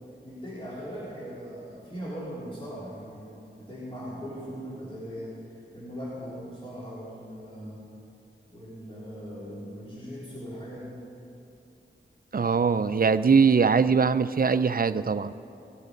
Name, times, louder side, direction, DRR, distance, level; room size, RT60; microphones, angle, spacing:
voice 1, 0.2-5.3 5.7-7.8 8.5-11.1, equal, 25° left, -9 dB, 3.9 m, -39 dB
voice 2, 12.3-15.3, right 5 dB, 45° right, 13 dB, 0.5 m, -22 dB
18.0 x 8.7 x 5.3 m, 2.7 s
wide cardioid pair, 40°, 20 cm